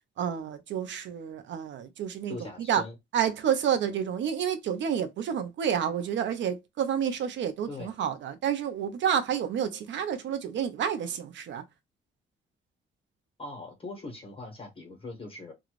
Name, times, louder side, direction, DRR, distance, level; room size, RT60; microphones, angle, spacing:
voice 1, 0.2-2.9 3.1-11.6, right 8 dB, 70° right, 0.6 m, -29 dB
voice 2, 2.3-2.9 7.7-7.9 13.4-15.5, left 2 dB, 25° left, 1.1 m, -41 dB
2.5 x 2.3 x 3.1 m
cardioid pair, 90°, 20 cm